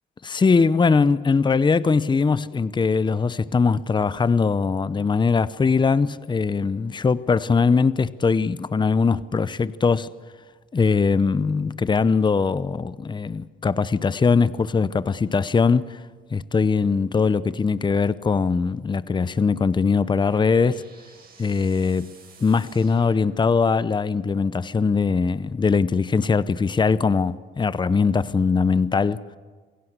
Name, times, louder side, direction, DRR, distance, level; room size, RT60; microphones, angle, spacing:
voice 1, 0.2-10.1 10.7-16.0 16.3-20.9 21.4-22.1 22.4-29.2, left 5 dB, 25° left, 0.7 m, -21 dB
sound 1, 19.6-23.9, right 5 dB, 50° right, 6.1 m, -53 dB
27.0 x 17.5 x 8.0 m
cardioid pair, 90°, 20 cm